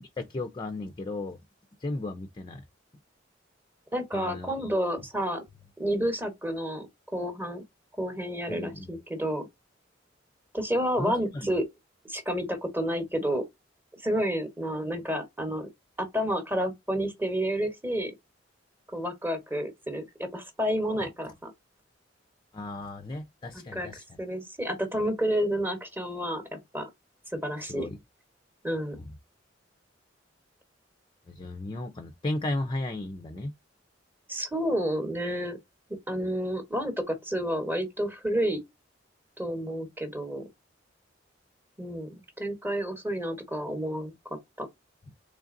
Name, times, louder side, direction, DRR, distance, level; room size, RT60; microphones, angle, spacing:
voice 1, 0.0-1.4 1.8-2.6 4.1-4.7 8.5-9.0 11.0-11.5 22.5-24.2 27.6-28.0 29.0-29.1 31.3-33.5, left 2 dB, 25° left, 0.5 m, -35 dB
voice 2, 3.9-5.4 5.8-6.9 7.1-7.6 8.0-9.5 10.5-11.6 12.0-13.4 14.0-15.7 16.0-18.1 18.9-21.5 23.5-23.9 24.2-26.9 27.3-27.9 28.6-29.0 34.3-35.6 36.1-38.6 39.4-40.4 41.8-44.1 44.6-44.7, equal, 10° right, 1.0 m, -30 dB
3.8 x 3.3 x 2.5 m
head